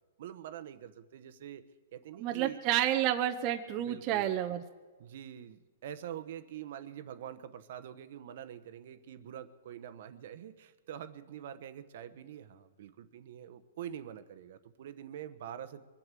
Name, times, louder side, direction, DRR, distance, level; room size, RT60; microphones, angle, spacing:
voice 1, 0.2-1.6 1.9-2.6 3.9-4.3 5.0-15.8, right 10 dB, 55° right, 12 dB, 1.0 m, -45 dB
voice 2, 2.2-4.6, right 12 dB, 30° right, 5 dB, 0.8 m, -30 dB
23.0 x 8.1 x 7.6 m, 1.4 s
hypercardioid pair, 160°, 0 cm